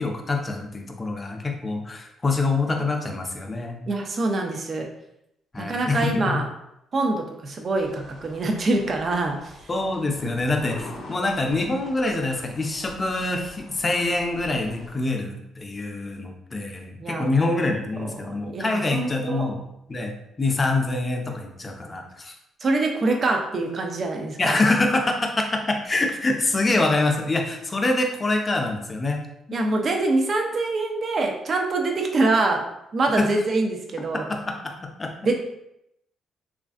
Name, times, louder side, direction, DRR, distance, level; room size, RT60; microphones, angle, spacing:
voice 1, 0.0-3.8 5.5-6.4 9.7-19.6 19.9-22.4 24.4-29.2 29.5-29.6 33.2-33.3 34.1-35.1, left 2 dB, 30° left, 3 dB, 0.5 m, -25 dB
voice 2, 3.9-4.9 5.6-6.4 6.9-9.5 17.0-17.6 18.0-19.5 22.6-24.6 29.5-32.7 32.9-34.2 35.2-35.4, right 2 dB, 45° right, 2 dB, 0.5 m, -25 dB
sound 1, 7.7-14.9, left 2 dB, 75° left, 0.6 m, -44 dB
3.1 x 2.5 x 2.4 m, 0.82 s
cardioid pair, 90°, 0 cm